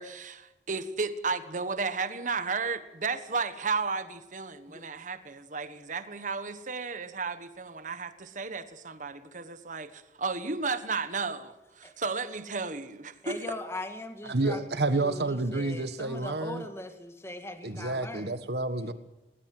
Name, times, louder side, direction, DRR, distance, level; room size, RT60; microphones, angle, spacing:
voice 1, 0.0-13.4, right 4 dB, 45° right, 1.3 m, -33 dB
voice 2, 13.2-14.6 14.9-18.4, left 1 dB, 15° left, 1.9 m, -40 dB
voice 3, 14.3-16.7 17.6-18.9, right 2 dB, 65° right, 1.6 m, -29 dB
21.0 x 19.0 x 7.8 m
head